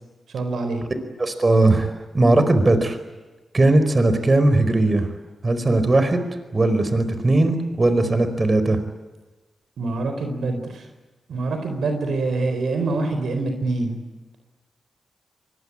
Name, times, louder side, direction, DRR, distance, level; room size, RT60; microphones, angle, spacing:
voice 1, 0.3-0.8 9.8-10.8 11.3-14.0, right 3 dB, 75° right, 6 dB, 4.1 m, -25 dB
voice 2, 1.2-3.0 3.5-5.1 5.4-6.2 6.5-8.8, right 2 dB, 40° right, 10 dB, 4.7 m, -18 dB
24.0 x 21.0 x 9.9 m, 1.2 s
supercardioid pair, 40°, 0 cm